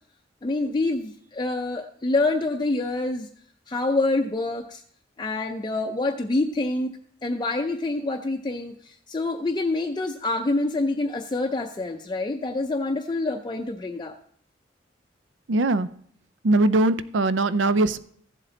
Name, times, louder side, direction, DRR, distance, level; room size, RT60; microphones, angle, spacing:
voice 1, 0.4-3.3 3.7-4.8 5.2-6.9 7.2-14.2, left 2 dB, 25° left, 3 dB, 0.5 m, -26 dB
voice 2, 15.5-15.9 16.4-18.0, right 2 dB, 75° right, 14 dB, 0.5 m, -21 dB
15.0 x 7.5 x 3.9 m, 0.62 s
head